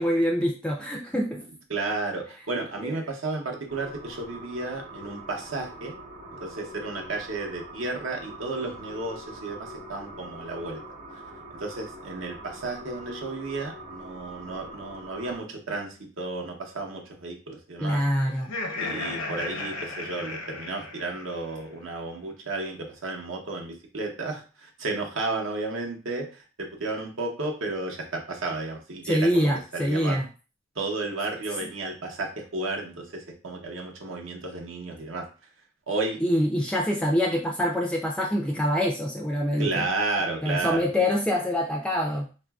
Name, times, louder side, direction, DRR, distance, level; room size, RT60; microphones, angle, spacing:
voice 1, 0.0-1.4 2.8-3.0 17.8-18.5 29.0-30.3 36.2-39.8 40.4-42.3, equal, 5° left, -1 dB, 0.3 m, -25 dB
voice 2, 1.7-5.9 6.4-10.8 11.6-18.0 18.8-30.2 30.8-35.3 35.9-36.2 39.6-40.9, right 3 dB, 70° right, 1 dB, 0.8 m, -33 dB
sound 1, 3.7-15.4, right 1 dB, 45° right, 1.0 m, -43 dB
Laughter, 18.3-21.6, left 2 dB, 75° left, 0.6 m, -35 dB
4.0 x 2.5 x 2.3 m, 0.35 s
head